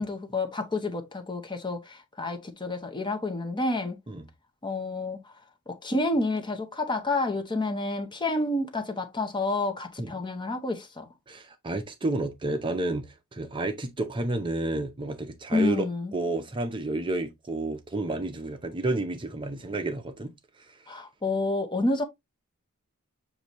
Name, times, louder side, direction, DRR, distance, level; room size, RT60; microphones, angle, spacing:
voice 1, 0.0-4.0 4.6-5.3 5.7-11.1 15.5-16.1 20.9-22.0, left 2 dB, 20° left, 0.7 m, -29 dB
voice 2, 11.3-15.8 16.1-20.3 20.7-20.8, right 2 dB, 20° right, 0.6 m, -30 dB
6.7 x 2.6 x 3.0 m
head